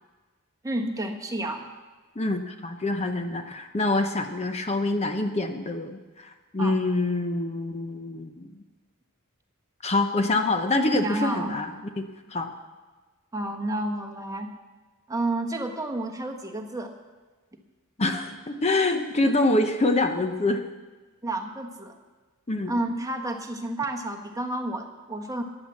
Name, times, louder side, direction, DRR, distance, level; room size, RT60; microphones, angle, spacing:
voice 1, 0.6-1.7 6.6-6.8 11.0-11.6 13.3-14.5 15.1-16.9 21.2-21.9 22.7-25.4, right 1 dB, 15° right, 4 dB, 1.2 m, -30 dB
voice 2, 2.2-8.5 9.8-11.7 12.0-12.5 18.0-20.6 22.5-22.7, left 2 dB, 30° left, 6 dB, 0.8 m, -26 dB
14.5 x 9.9 x 7.2 m, 1.3 s
head